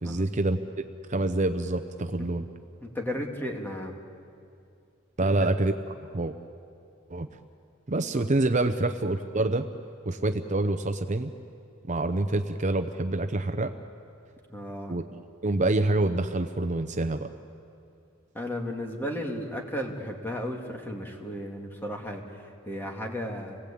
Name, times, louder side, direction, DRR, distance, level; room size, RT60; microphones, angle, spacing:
voice 1, 0.0-0.6 1.1-2.4 5.2-5.7 6.1-6.4 7.1-7.3 7.9-9.6 10.1-11.3 11.9-13.7 14.9-15.0 15.4-17.3, right 2 dB, 35° right, 7 dB, 0.8 m, -26 dB
voice 2, 2.8-4.0 5.2-5.5 14.5-14.9 18.3-23.6, equal, 10° left, 1 dB, 2.4 m, -34 dB
29.5 x 19.5 x 8.6 m, 2.5 s
head